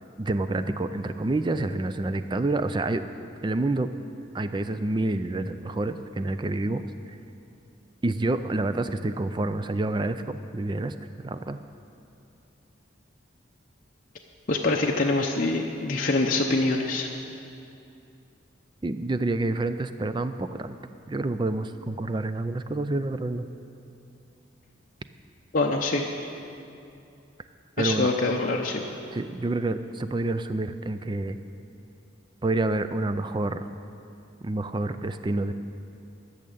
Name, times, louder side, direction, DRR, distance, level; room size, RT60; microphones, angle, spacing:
voice 1, 0.2-3.0 3.4-3.9 4.3-7.2 8.0-10.9 11.2-11.6 18.8-20.8 21.1-23.5 27.8-28.1 29.1-31.4 32.4-33.7 34.4-35.5, right 2 dB, 25° right, 11 dB, 0.3 m, -28 dB
voice 2, 14.5-17.1 25.5-26.0 27.8-28.8, left 2 dB, 40° left, -1 dB, 0.6 m, -24 dB
12.5 x 6.5 x 8.5 m, 2.7 s
head